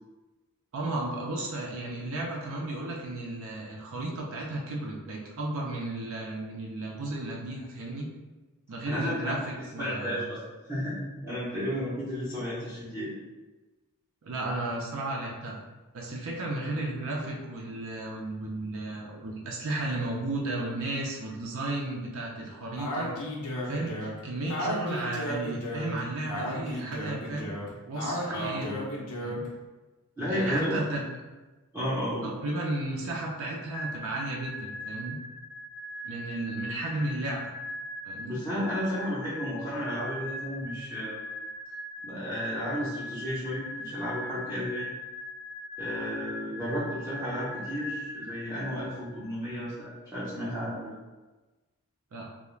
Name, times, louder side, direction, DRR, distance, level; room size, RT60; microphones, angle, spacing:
voice 1, 0.7-8.1 8.7-10.2 14.2-15.6 15.9-23.1 23.6-27.6 27.9-28.8 29.2-29.5 30.3-31.0 32.2-35.2 36.0-37.5 38.0-38.4 52.1-52.3, right 2 dB, 65° right, -2 dB, 0.4 m, -34 dB
voice 2, 8.9-9.4 9.8-10.4 10.7-11.0 11.2-13.1 28.3-28.9 30.2-30.8 31.7-32.3 38.2-41.2 42.0-44.9 45.8-51.0, equal, 10° right, -10 dB, 0.6 m, -33 dB
Speech, 22.8-29.5, equal, 90° left, 0.6 m, -34 dB
sound 1, 33.7-49.3, left 1 dB, 40° left, 0.5 m, -40 dB
2.3 x 2.1 x 3.0 m, 1.2 s
head